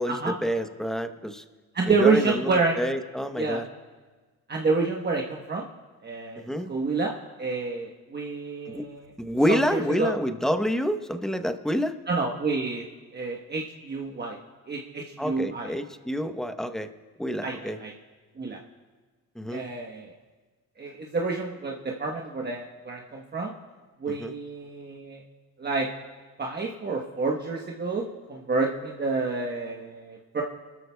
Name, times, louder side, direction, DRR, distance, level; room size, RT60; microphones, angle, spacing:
voice 1, 0.0-1.4 1.9-3.6 6.4-6.7 8.7-8.9 9.2-12.0 15.2-16.9 17.2-17.8 19.3-19.7 24.2-24.3, equal, ahead, 8 dB, 0.9 m, -28 dB
voice 2, 1.7-2.8 3.4-3.6 4.5-5.7 6.0-6.4 6.7-7.1 7.4-9.1 9.5-10.1 12.1-12.8 13.1-14.4 14.7-15.7 17.4-17.9 18.4-18.6 19.5-20.1 20.8-23.5 24.0-25.2 25.6-25.9 26.4-30.4, right 3 dB, 35° right, 0 dB, 1.1 m, -28 dB
26.0 x 13.0 x 2.3 m, 1.4 s
cardioid pair, 90°, 30 cm